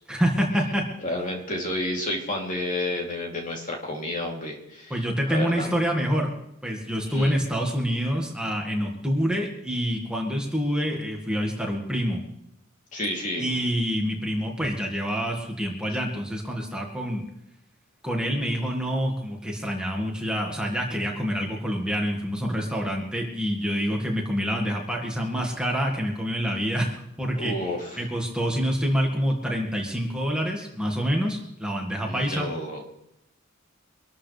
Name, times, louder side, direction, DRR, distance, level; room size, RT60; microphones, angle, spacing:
voice 1, 0.1-0.9 4.9-6.3 6.6-12.2 13.4-17.2 18.0-27.5 28.0-32.5, equal, 5° right, -1 dB, 1.9 m, -27 dB
voice 2, 1.0-5.7 7.0-7.4 12.9-13.5 27.4-28.1 32.0-32.8, left 1 dB, 40° left, 0 dB, 3.1 m, -31 dB
24.5 x 13.0 x 3.4 m, 0.81 s
head